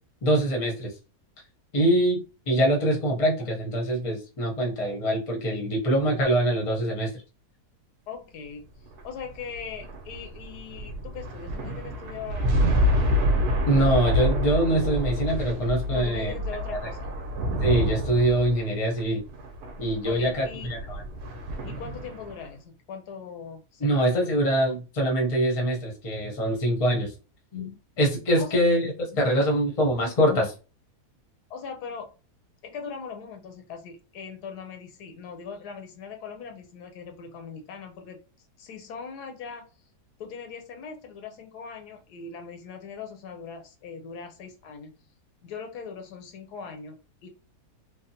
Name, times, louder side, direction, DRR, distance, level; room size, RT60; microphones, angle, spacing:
voice 1, 0.2-0.9 1.7-7.1 13.7-16.3 17.6-19.2 19.8-21.0 23.8-27.1 27.5-27.7 28.0-30.5, right 1 dB, 30° left, 0 dB, 0.7 m, -24 dB
voice 2, 8.1-8.7 9.0-12.8 15.9-17.1 20.0-20.7 21.6-24.0 28.4-28.6 31.5-32.1 32.6-38.2 38.6-39.7 40.2-44.9 45.4-47.3, left 6 dB, 80° left, 5 dB, 1.2 m, -40 dB
sound 1, 8.9-22.5, equal, 75° right, 1.1 m, -27 dB
3.5 x 2.0 x 2.7 m, 0.33 s
omnidirectional pair, 1.7 m